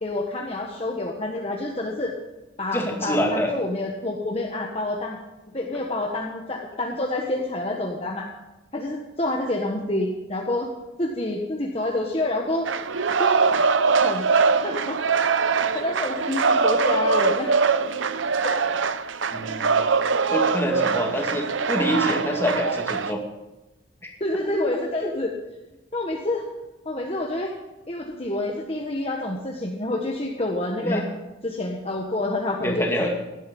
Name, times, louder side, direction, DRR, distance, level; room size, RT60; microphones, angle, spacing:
voice 1, 0.0-2.1 2.6-5.2 5.5-8.3 8.7-10.7 11.0-12.7 13.2-13.4 13.9-14.3 14.6-15.0 15.7-17.5 18.4-18.6 20.1-20.8 24.2-25.3 25.9-26.4 26.8-27.5 27.9-31.0 31.4-33.1, left 2 dB, 30° left, -1 dB, 1.4 m, -28 dB
voice 2, 2.7-3.5 19.3-19.8 20.3-23.2 24.4-24.8 25.0-25.1 30.8-31.0 32.6-33.1, equal, 10° left, 0 dB, 2.4 m, -26 dB
sound 1, 12.6-23.1, right 5 dB, 85° right, 0.7 m, -22 dB
17.0 x 12.0 x 5.4 m, 1.0 s
head